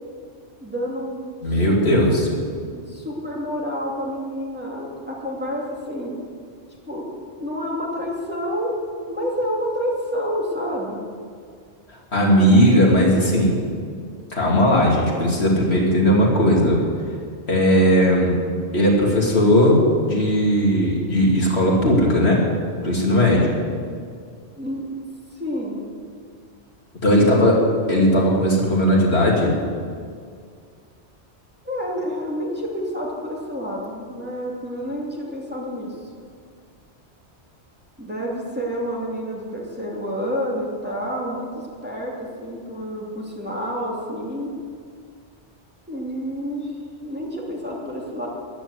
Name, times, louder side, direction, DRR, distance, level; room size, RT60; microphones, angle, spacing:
voice 1, 0.6-1.2 1.5-2.1 2.7-6.2 6.9-7.1 7.4-8.7 9.1-11.0 24.6-24.9 25.3-25.8 27.1-27.5 31.6-35.9 38.0-41.5 41.8-44.5 45.9-46.7 47.0-48.3, equal, 10° right, -4 dB, 2.6 m, -29 dB
voice 2, 1.4-2.3 11.9-13.6 14.3-16.8 17.5-18.3 18.7-22.4 22.8-23.5 27.0-27.6 27.9-29.5, equal, 70° left, -3 dB, 3.0 m, -17 dB
13.0 x 11.0 x 8.1 m, 2.1 s
omnidirectional pair, 1.1 m